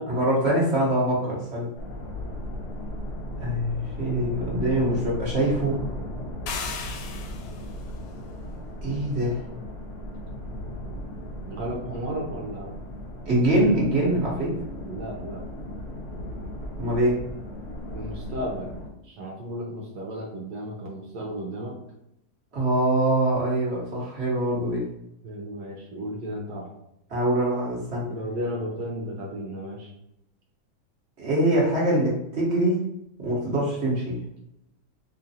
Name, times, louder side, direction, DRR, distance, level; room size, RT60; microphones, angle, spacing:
voice 1, 0.1-1.7 3.4-5.8 8.8-9.4 13.3-14.5 16.8-17.2 22.5-24.8 27.1-28.1 31.2-32.8 33.2-34.2, right 1 dB, 45° right, -5 dB, 1.3 m, -24 dB
sound 1, 1.7-18.9, equal, 50° left, 1.2 m, -36 dB
sound 2, 6.5-7.7, left 6 dB, 90° left, 1.2 m, -35 dB
voice 2, 11.5-12.8 14.8-15.5 17.9-18.8 19.0-21.8 25.2-26.7 28.1-29.9, equal, 80° right, 0 dB, 1.3 m, -34 dB
3.9 x 3.1 x 2.7 m, 0.83 s
omnidirectional pair, 1.8 m